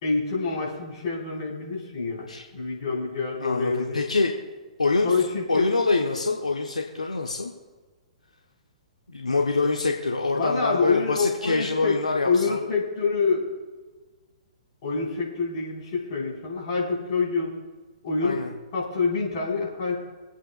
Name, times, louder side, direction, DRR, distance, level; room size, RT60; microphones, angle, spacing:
voice 1, 0.0-4.0 5.0-5.7 10.3-12.0 12.2-13.5 14.8-17.5 18.0-18.4 18.7-20.0, left 4 dB, 45° left, -4 dB, 4.6 m, -26 dB
voice 2, 3.4-4.3 4.8-5.1 5.5-7.5 9.1-12.6 18.2-18.5, left 3 dB, 80° left, 1 dB, 1.1 m, -25 dB
26.0 x 8.9 x 2.4 m, 1.3 s
figure-of-eight pair, 115°, 4 cm